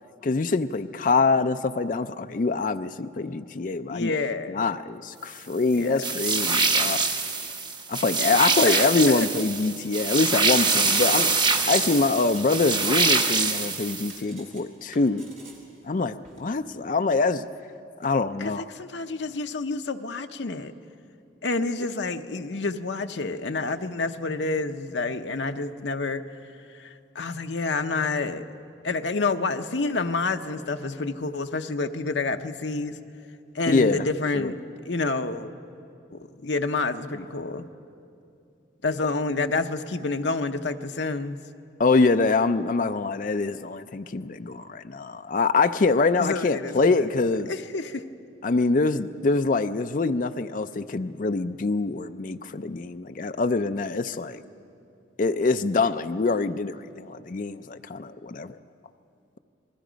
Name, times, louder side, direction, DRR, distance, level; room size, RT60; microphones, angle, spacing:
voice 1, 0.2-4.1 4.5-7.0 7.9-11.3 11.7-15.2 15.9-17.4 18.0-18.6 33.7-34.1 34.3-34.5 41.8-47.5 48.4-54.4 55.2-58.6, left 3 dB, 45° left, 9 dB, 0.4 m, -24 dB
voice 2, 3.9-4.7 5.8-6.0 8.7-9.3 18.4-20.7 21.4-26.2 26.7-28.5 28.8-33.0 33.5-34.6 34.9-35.5 36.1-37.7 38.8-41.4 46.2-48.0, left 3 dB, 70° left, 7 dB, 0.8 m, -29 dB
sound 1, 6.0-14.2, right 4 dB, 25° right, 0.8 m, -24 dB
sound 2, 10.6-12.8 13.1-14.6 14.9-15.6 16.2-16.4, right 2 dB, 40° right, 3.1 m, -45 dB
27.0 x 19.5 x 5.1 m, 2.6 s
head